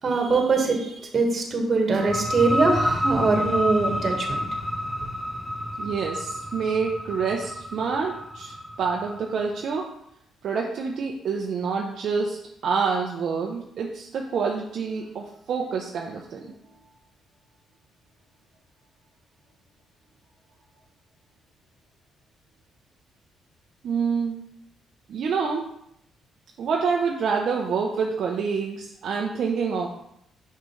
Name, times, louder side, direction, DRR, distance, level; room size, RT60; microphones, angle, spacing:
voice 1, 0.0-4.4, right 3 dB, 45° right, 2 dB, 1.6 m, -22 dB
sound 1, 1.9-9.4, equal, 5° left, 0.8 m, -29 dB
voice 2, 5.8-9.9 10.4-16.5 23.8-24.4 25.1-25.6 26.6-29.9, right 5 dB, 65° right, 0 dB, 0.7 m, -27 dB
6.1 x 5.6 x 3.2 m, 0.76 s
cardioid pair, 90°, 0 cm